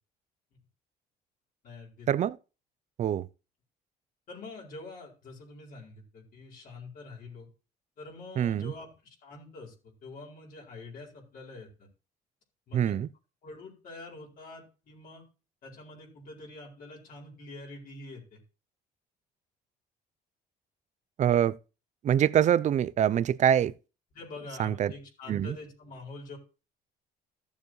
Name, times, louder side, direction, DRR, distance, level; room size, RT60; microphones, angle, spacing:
voice 1, 1.6-2.1 4.3-7.5 8.0-11.9 12.7-13.0 13.4-15.2 15.6-18.4 24.1-26.4, left 2 dB, 60° left, 4.4 m, -46 dB
voice 2, 8.4-8.7 12.7-13.1 21.2-21.5 22.0-23.7 24.6-24.9 25.3-25.5, right 10 dB, 45° right, 0.5 m, -24 dB
14.0 x 7.1 x 3.2 m
cardioid pair, 110°, 17 cm